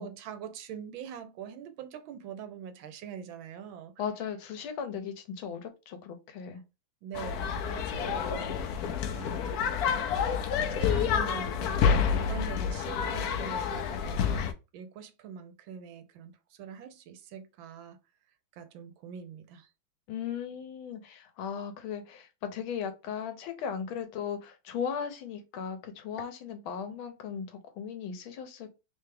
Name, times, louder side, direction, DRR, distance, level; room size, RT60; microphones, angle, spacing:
voice 1, 0.0-3.9 7.0-9.9 10.5-18.0 18.5-19.7, right 8 dB, 90° right, 1.4 m, -44 dB
voice 2, 4.0-6.6 20.1-28.7, left 7 dB, 85° left, 1.6 m, -37 dB
sound 1, 7.1-14.5, left 7 dB, 70° left, 0.9 m, -29 dB
3.7 x 3.3 x 3.3 m
omnidirectional pair, 2.2 m